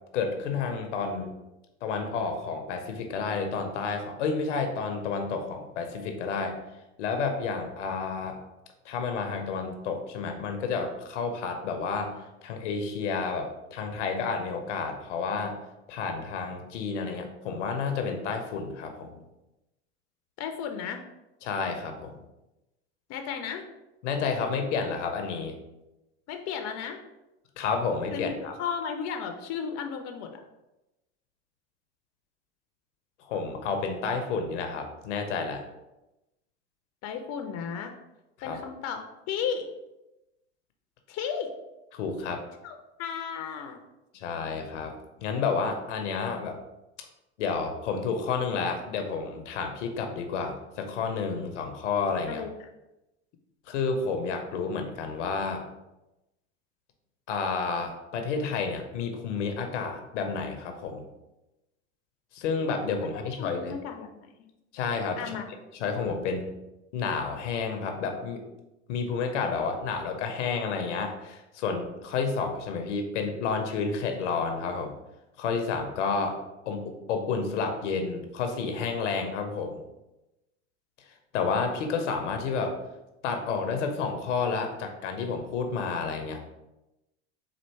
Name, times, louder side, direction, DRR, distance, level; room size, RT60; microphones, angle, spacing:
voice 1, 0.1-1.3 1.8-6.6 7.0-8.4 8.8-12.2 12.4-15.6 15.9-19.1 21.4-22.2 24.0-25.5 27.6-28.5 33.2-35.6 38.4-38.6 41.9-42.4 44.1-44.9 45.2-46.6 47.4-52.4 53.7-55.6 57.3-61.0 62.3-63.8 64.7-65.3 65.8-66.5 66.9-68.4 68.9-74.9 75.4-76.4 76.7-79.8 81.3-82.8 83.2-86.4, left 5 dB, 80° left, 5 dB, 0.7 m, -30 dB
voice 2, 20.4-21.0 23.1-23.6 26.3-27.0 28.1-28.3 28.6-30.4 37.0-37.9 38.4-39.7 41.1-41.5 42.6-43.8 52.3-52.5 63.4-64.3 65.2-65.4, left 7 dB, 45° left, 6 dB, 0.6 m, -34 dB
4.3 x 2.5 x 4.5 m, 0.97 s
hypercardioid pair, 85°, 35 cm